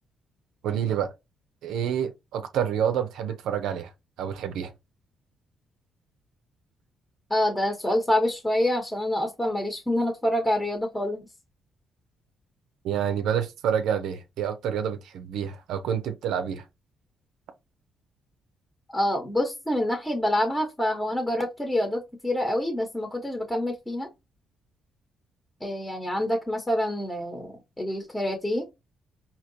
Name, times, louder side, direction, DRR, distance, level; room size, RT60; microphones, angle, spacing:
voice 1, 0.6-1.1 1.6-3.9 4.2-4.7 12.8-16.6, right 8 dB, 85° right, 0.5 m, -28 dB
voice 2, 7.3-11.3 18.9-24.1 25.6-28.7, left 1 dB, 10° left, 1.0 m, -27 dB
4.4 x 2.8 x 2.7 m
cardioid pair, 90°, 0 cm